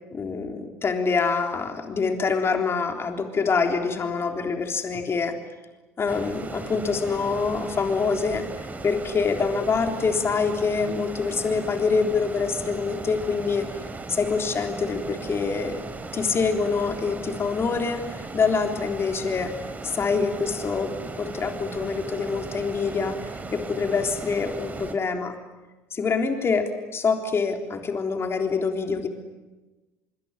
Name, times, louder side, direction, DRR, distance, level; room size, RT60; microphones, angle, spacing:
voice 1, 0.1-5.4 6.0-13.7 14.1-19.5 19.8-23.2 23.5-25.3 25.9-29.1, left 5 dB, 35° left, 4 dB, 3.7 m, -25 dB
sound 1, 6.1-24.9, right 3 dB, 25° right, 4.0 m, -37 dB
25.0 x 23.5 x 9.9 m, 1.2 s
hypercardioid pair, 70°, 7 cm